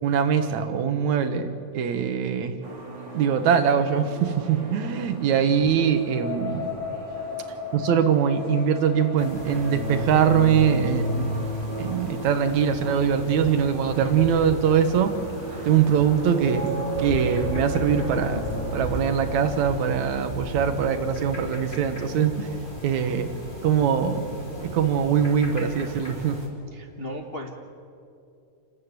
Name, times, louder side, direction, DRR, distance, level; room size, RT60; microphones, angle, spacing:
voice 1, 0.0-2.6 3.1-6.7 7.7-11.3 11.8-15.2 15.7-16.7 17.0-18.4 18.7-22.5 22.8-23.3 23.6-24.3 24.6-26.4, right 8 dB, 70° right, 8 dB, 2.6 m, -22 dB
sound 1, 2.6-19.9, equal, 35° right, 3.5 m, -34 dB
sound 2, 9.2-26.5, left 1 dB, 15° left, 3.0 m, -36 dB
voice 2, 26.8-27.5, left 1 dB, 80° left, 1 dB, 0.5 m, -36 dB
28.0 x 13.0 x 9.6 m, 2.5 s
omnidirectional pair, 3.6 m